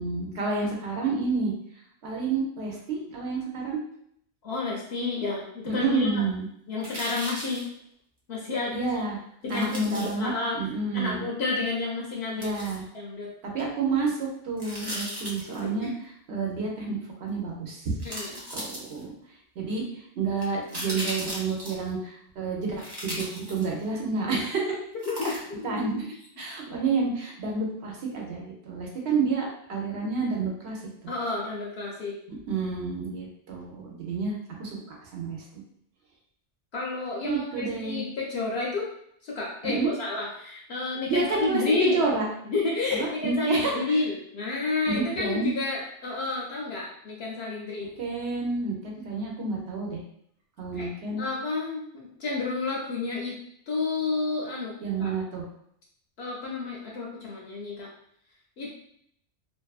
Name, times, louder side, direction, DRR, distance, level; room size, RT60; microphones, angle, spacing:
voice 1, 0.0-1.5 2.0-3.8 5.7-6.5 8.7-9.2 9.5-11.2 12.4-12.8 13.4-15.9 16.3-18.0 18.5-19.1 19.6-19.8 20.2-24.8 25.2-26.1 26.4-31.1 32.5-35.4 37.2-38.0 39.6-39.9 41.1-42.3 42.9-44.0 44.9-45.5 48.0-50.0 50.6-51.2 54.8-55.4, right 4 dB, 70° right, -2 dB, 0.9 m, -29 dB
voice 2, 4.4-6.2 6.7-7.7 8.3-8.8 9.4-10.6 10.9-12.5 12.9-13.3 15.6-15.9 18.0-18.3 25.1-25.9 31.1-32.1 36.7-38.9 39.2-42.0 42.5-47.9 50.7-50.9 51.2-53.4 53.7-54.7 55.0-55.1 56.2-57.9 58.6-58.7, left 3 dB, 65° left, -3 dB, 0.8 m, -30 dB
sound 1, 6.8-7.6 9.5-10.1 12.4-12.8 14.6-15.6 17.3-17.4 18.0-19.2 20.4-21.9 22.8-23.9 25.0-25.7 26.0-26.1, equal, 25° right, 0.6 m, -36 dB
2.6 x 2.3 x 2.3 m, 0.69 s
omnidirectional pair, 1.2 m